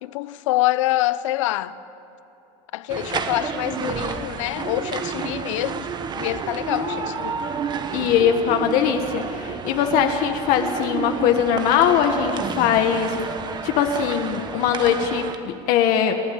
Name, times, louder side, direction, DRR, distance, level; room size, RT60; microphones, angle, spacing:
voice 1, 0.0-1.8 2.7-5.9 6.2-7.4, left 16 dB, 90° left, 0.7 m, -25 dB
sound 1, 2.9-15.4, right 6 dB, 30° right, 1.3 m, -30 dB
voice 2, 6.7-7.1 7.9-13.3 13.6-16.2, left 8 dB, 60° left, 1.6 m, -21 dB
29.5 x 12.0 x 8.7 m
supercardioid pair, 130°, 16 cm